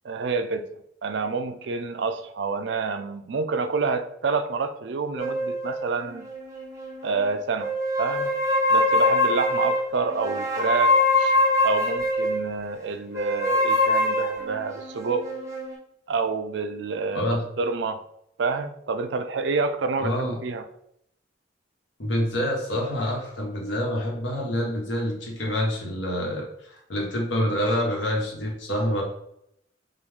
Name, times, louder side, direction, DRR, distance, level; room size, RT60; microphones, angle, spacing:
voice 1, 0.0-0.7 1.0-6.3 7.0-8.3 8.7-11.4 11.6-15.3 16.1-17.3 17.6-18.0 18.4-20.7, right 4 dB, 70° right, 9 dB, 0.4 m, -28 dB
sound 1, 5.2-7.2 7.6-12.5 13.1-15.7, left 1 dB, 15° right, 0.9 m, -24 dB
voice 2, 17.1-17.4 20.0-20.4 22.0-29.0, equal, 80° left, -1 dB, 1.3 m, -27 dB
5.2 x 2.4 x 3.6 m, 0.74 s
head